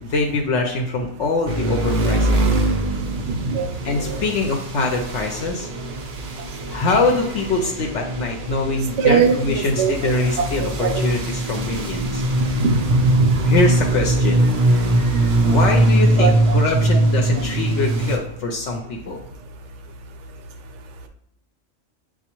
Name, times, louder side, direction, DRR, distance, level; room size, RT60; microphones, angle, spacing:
voice 1, 0.0-2.5 3.8-5.7 6.7-12.2 13.5-19.2, left 3 dB, 70° left, 2 dB, 0.8 m, -24 dB
sound 1, 1.5-18.2, right 1 dB, 55° right, 0.6 m, -21 dB
voice 2, 3.3-3.7 4.1-4.2 9.0-10.1 10.6-11.0 12.6-13.6 16.2-16.6, right 5 dB, 70° right, 5 dB, 0.9 m, -21 dB
6.9 x 2.4 x 2.9 m, 0.76 s
omnidirectional pair, 1.3 m